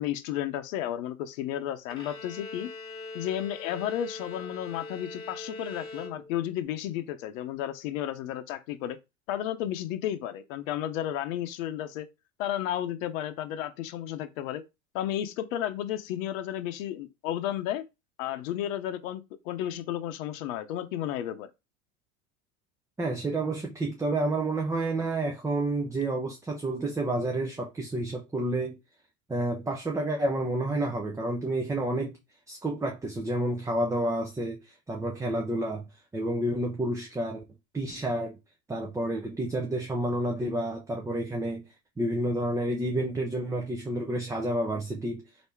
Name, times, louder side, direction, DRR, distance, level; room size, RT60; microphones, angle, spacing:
voice 1, 0.0-2.7 3.1-9.0 9.3-12.1 12.4-14.6 14.9-17.9 18.2-21.5, left 11 dB, 70° left, 0.7 m, -33 dB
Bowed string instrument, 1.9-6.6, left 3 dB, 10° left, 1.5 m, -42 dB
voice 2, 23.0-28.8 29.3-32.2 32.5-35.9 36.1-37.4 37.7-38.4 38.7-41.6 42.0-45.2, right 1 dB, 10° right, 0.5 m, -29 dB
3.3 x 2.7 x 4.4 m
hypercardioid pair, 100°, 41 cm